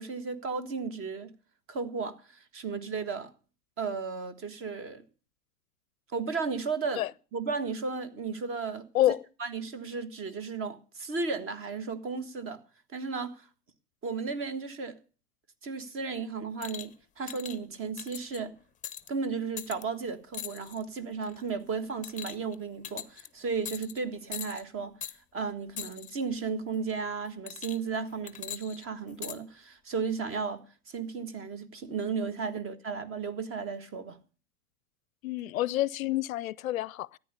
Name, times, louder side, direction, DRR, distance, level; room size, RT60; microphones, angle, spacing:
voice 1, 0.0-1.3 1.7-3.3 3.8-5.0 6.1-7.1 7.3-8.9 9.4-12.6 12.9-13.5 14.0-15.0 15.6-18.6 19.1-25.0 25.3-34.2, right 5 dB, 30° right, 1.7 m, -34 dB
sound 1, 16.6-16.9 17.3-17.6 18.0-18.4 18.8-19.1 19.6-19.8 20.3-20.8 21.2-21.5 22.0-22.5 22.8-23.3 23.6-24.0 24.3-24.6 25.0-25.2 25.8-26.1 27.5-28.0 28.3-29.4 30.2-30.3, left 10 dB, 15° left, 0.8 m, -40 dB
voice 2, 35.2-37.2, left 14 dB, 65° left, 0.6 m, -28 dB
14.0 x 9.6 x 6.8 m
hypercardioid pair, 100°, 45 cm